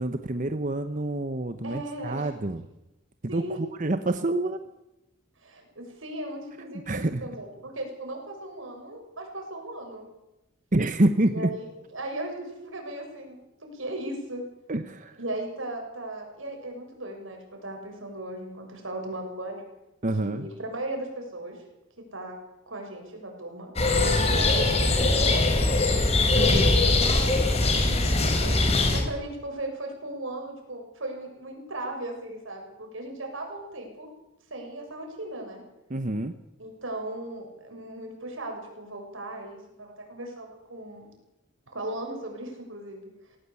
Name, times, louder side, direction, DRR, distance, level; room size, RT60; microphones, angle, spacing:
voice 1, 0.0-2.6 3.2-4.6 6.6-7.2 10.7-11.5 14.7-15.1 20.0-20.5 35.9-36.3, right 1 dB, 40° right, 9 dB, 1.0 m, -27 dB
voice 2, 1.6-2.3 3.3-3.6 5.4-10.1 11.3-11.7 11.9-14.4 15.2-19.7 20.2-21.6 22.1-22.4 22.7-25.6 26.2-34.1 34.5-35.6 36.6-41.1 41.7-43.1, right 1 dB, 90° right, 2 dB, 7.1 m, -37 dB
sound 1, 23.8-29.0, left 2 dB, 35° left, 3.8 m, -22 dB
19.5 x 18.5 x 8.5 m, 0.93 s
head